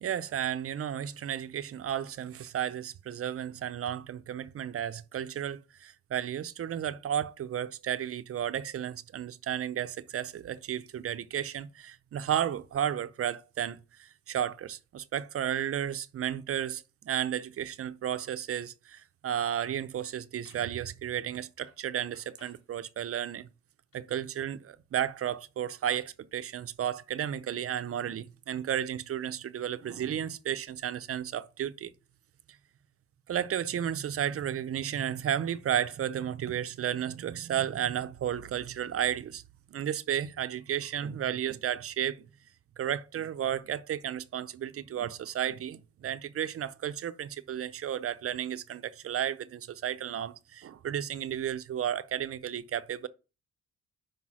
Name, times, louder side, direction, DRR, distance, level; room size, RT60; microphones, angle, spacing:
voice 1, 0.0-23.5 23.9-31.9 33.3-39.4 39.7-42.2 42.8-53.1, right 10 dB, 50° right, 0.6 m, -33 dB
sound 1, 19.0-19.1 19.5-19.7 20.0-20.7 21.7-21.9 22.1-22.7 23.9-24.3, left 3 dB, 50° left, 4.1 m, -63 dB
5.6 x 5.4 x 6.1 m
cardioid pair, 115°, 29 cm